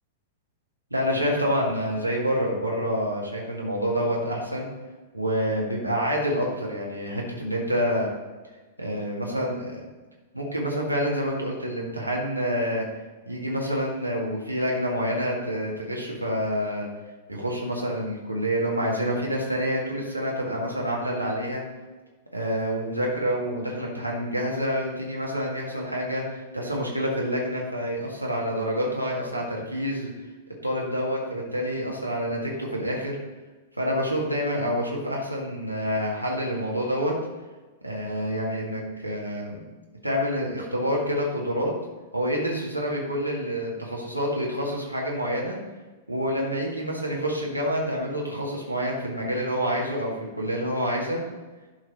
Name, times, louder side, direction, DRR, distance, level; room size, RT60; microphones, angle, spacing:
voice 1, 0.9-4.7 5.1-8.1 8.8-9.8 10.3-12.9 13.3-16.9 17.3-21.6 22.3-30.1 30.6-33.2 33.8-37.2 37.8-39.6 40.0-41.7 42.1-45.6 46.1-51.3, equal, 90° right, -3 dB, 2.0 m, -27 dB
11.5 x 4.9 x 4.8 m, 1.3 s
figure-of-eight pair, 100°, 0 cm